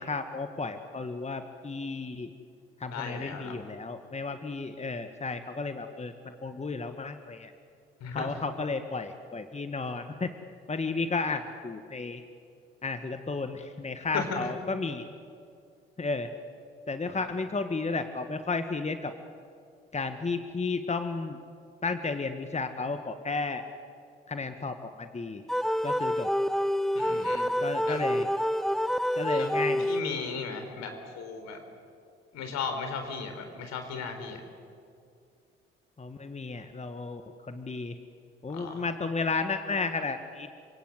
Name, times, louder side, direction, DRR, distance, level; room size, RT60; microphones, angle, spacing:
voice 1, 0.0-2.3 2.8-7.5 8.1-10.3 10.7-12.2 12.8-15.0 16.0-16.3 16.9-19.1 19.9-21.4 21.8-23.6 24.3-25.4 25.8-26.3 27.1-27.3 27.6-28.3 29.1-29.9 36.0-37.9 38.4-40.5, left 3 dB, 20° left, 8 dB, 1.7 m, -33 dB
voice 2, 2.9-3.6 8.0-8.3 14.1-14.5 26.9-27.5 27.8-28.0 29.3-29.6 29.9-31.6 32.3-34.4 38.5-38.8, left 5 dB, 65° left, 6 dB, 4.3 m, -36 dB
sound 1, 25.5-30.4, equal, ahead, 0.6 m, -28 dB
27.5 x 25.5 x 8.0 m, 2.4 s
figure-of-eight pair, 45°, 29 cm